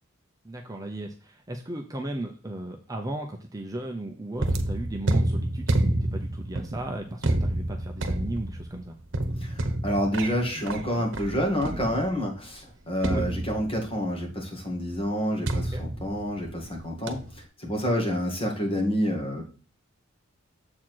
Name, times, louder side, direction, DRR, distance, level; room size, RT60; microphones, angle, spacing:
voice 1, 0.4-8.9 13.1-13.2 15.7-15.8, right 1 dB, 15° right, 2 dB, 0.7 m, -36 dB
sound 1, 4.4-12.3 13.0-14.0 15.5-16.7 17.1-17.4, right 1 dB, 60° right, 1.1 m, -29 dB
voice 2, 9.4-19.4, equal, 25° left, 0 dB, 2.2 m, -28 dB
7.5 x 4.4 x 4.5 m, 0.38 s
head